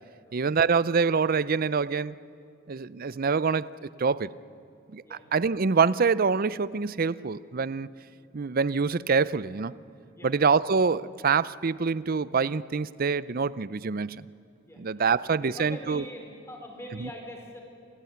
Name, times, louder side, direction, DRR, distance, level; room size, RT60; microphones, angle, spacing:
voice 1, 0.3-2.2 2.7-3.7 4.0-4.3 4.9-5.0 5.3-7.9 8.3-9.7 10.2-14.3 14.8-16.0 17.0-17.1, right 5 dB, 45° right, 19 dB, 0.5 m, -25 dB
voice 2, 15.1-17.6, equal, 15° left, 2 dB, 4.5 m, -43 dB
27.5 x 18.0 x 9.4 m, 2.4 s
head